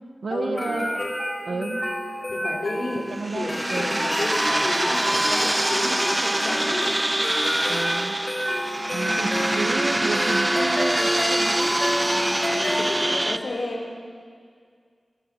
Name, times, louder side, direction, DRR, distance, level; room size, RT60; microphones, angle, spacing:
voice 1, 0.2-1.0 1.4-1.8 3.1-4.0 7.7-8.2 8.9-11.8, right 3 dB, 90° right, 6 dB, 1.2 m, -31 dB
sound 1, 0.6-13.4, equal, 35° left, 4.1 m, -30 dB
voice 2, 2.3-3.1 3.3-6.9 11.7-12.0 12.5-13.8, left 2 dB, 85° left, -1 dB, 4.7 m, -31 dB
sound 2, 3.1-13.4, right 1 dB, 25° right, 1.1 m, -24 dB
28.5 x 24.5 x 6.6 m, 2.1 s
wide cardioid pair, 60°, 0 cm